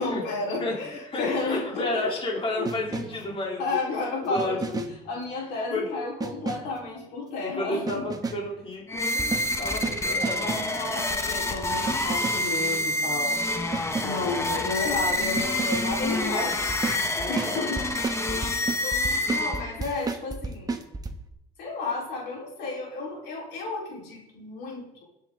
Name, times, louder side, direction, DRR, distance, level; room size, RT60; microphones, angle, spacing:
voice 1, 0.0-2.0 2.6-2.7 3.1-3.2 3.6-8.1 10.4-13.4 14.0-16.7 17.3-17.8 18.3-18.4 18.8-20.8 21.6-25.0, left 3 dB, 90° left, -2 dB, 4.4 m, -32 dB
voice 2, 0.6-3.8 4.2-4.6 5.7-5.9 7.4-10.8 14.4-14.7 16.1-16.5 17.2-17.7, left 2 dB, 35° left, -2 dB, 3.7 m, -32 dB
sound 1, 2.6-3.3 4.4-5.1 6.2-6.8 7.9-8.6 9.2-10.8 11.9-12.6 13.7-14.3 15.4-16.0 16.7-21.1, right 3 dB, 20° right, 1.2 m, -33 dB
sound 2, 8.9-19.9, left 1 dB, 15° left, 1.2 m, -28 dB
19.5 x 8.2 x 3.9 m, 0.84 s
cardioid pair, 110°, 17 cm